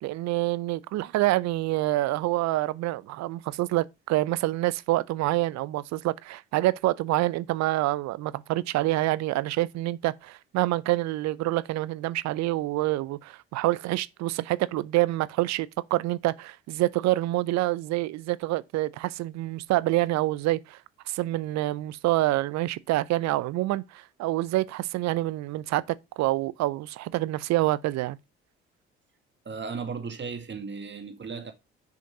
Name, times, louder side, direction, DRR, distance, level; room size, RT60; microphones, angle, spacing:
voice 1, 0.0-20.8 21.1-28.2, right 17 dB, 65° right, 0.6 m, -27 dB
voice 2, 29.5-31.5, right 5 dB, 35° right, 2.0 m, -35 dB
6.6 x 5.1 x 5.3 m
hypercardioid pair, 50°, 30 cm